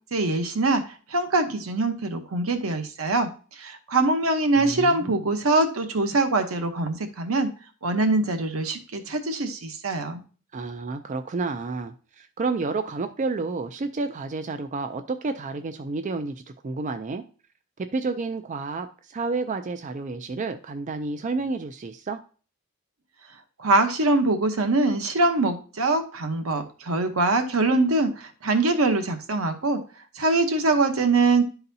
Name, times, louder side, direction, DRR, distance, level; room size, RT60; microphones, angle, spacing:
voice 1, 0.1-7.5 7.8-10.2 23.6-29.8 30.1-31.4, right 2 dB, 85° right, 7 dB, 0.9 m, -23 dB
voice 2, 4.6-5.2 10.5-17.2 17.8-22.2, right 3 dB, 35° right, 8 dB, 0.4 m, -30 dB
11.5 x 4.0 x 2.7 m, 0.38 s
head